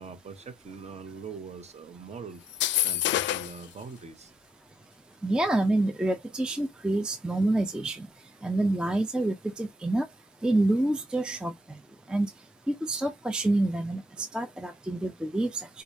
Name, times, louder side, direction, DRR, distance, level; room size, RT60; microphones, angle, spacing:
voice 1, 0.0-2.4 2.8-4.3, right 5 dB, 35° right, 0.9 m, -42 dB
sound 1, 2.5-3.6, left 13 dB, 70° left, 0.4 m, -27 dB
voice 2, 5.2-8.1 8.4-10.1 10.4-11.5 12.1-12.3 12.7-15.7, right 2 dB, 5° right, 0.3 m, -27 dB
4.3 x 2.3 x 2.6 m
cardioid pair, 90°, 20 cm